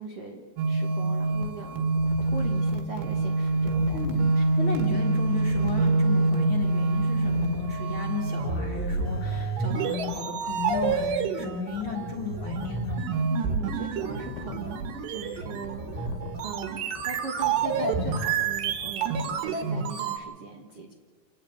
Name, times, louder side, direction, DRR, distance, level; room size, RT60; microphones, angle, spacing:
voice 1, 0.0-1.8 2.2-4.0 13.3-20.9, right 4 dB, 90° right, 1 dB, 1.2 m, -40 dB
sound 1, 0.6-20.2, right 3 dB, 70° right, 3.4 m, -27 dB
sound 2, 1.2-19.3, left 8 dB, 70° left, 2.4 m, -43 dB
voice 2, 3.9-13.0, left 6 dB, 50° left, 0 dB, 1.5 m, -34 dB
29.0 x 9.8 x 9.2 m, 1.5 s
omnidirectional pair, 5.4 m